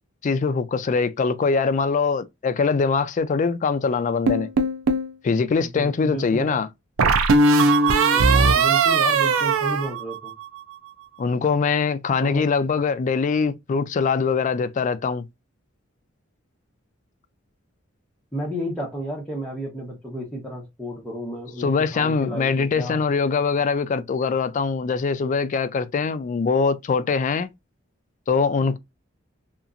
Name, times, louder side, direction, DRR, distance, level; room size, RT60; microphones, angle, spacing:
voice 1, 0.2-4.5 5.2-6.7 11.2-15.2 21.6-27.5 28.3-28.8, left 5 dB, 40° left, 0.3 m, -22 dB
sound 1, 4.3-5.1 7.0-10.6, right 3 dB, 80° right, 0.4 m, -19 dB
voice 2, 5.6-6.6 8.1-10.3 12.2-12.5 18.3-23.0, equal, 5° left, 0.9 m, -32 dB
2.9 x 2.4 x 2.4 m
head